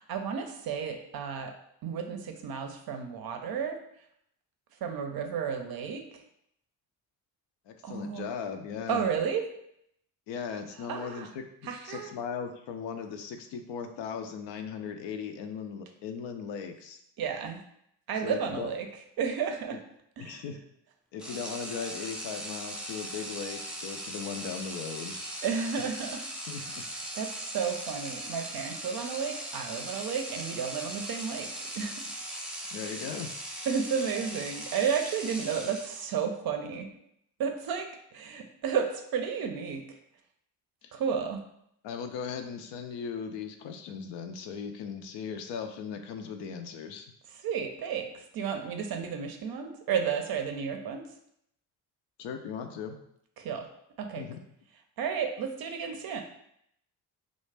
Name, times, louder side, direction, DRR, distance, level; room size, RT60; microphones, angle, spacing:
voice 1, 0.0-1.5 1.8-3.8 4.8-6.0 7.8-8.3 8.9-9.5 10.8-11.3 11.6-12.1 17.2-17.6 18.1-18.9 19.2-19.8 20.2-20.4 25.4-26.2 26.6-26.8 27.1-32.0 32.9-33.0 33.7-36.9 37.4-40.0 40.9-41.4 47.3-51.1 53.4-53.7 54.0-54.2 55.0-56.2, right 6 dB, 50° right, 5 dB, 0.5 m, -32 dB
voice 2, 7.7-9.0 10.3-11.4 11.8-17.0 18.2-18.7 20.2-20.6 21.1-25.4 26.5-26.8 32.7-33.3 40.8-41.0 41.8-47.1 52.2-53.0 54.2-54.4, left 6 dB, 65° left, 6 dB, 0.5 m, -38 dB
sound 1, 21.2-36.2, right 1 dB, ahead, 0.4 m, -39 dB
2.4 x 2.1 x 3.3 m, 0.72 s
hypercardioid pair, 55°, 47 cm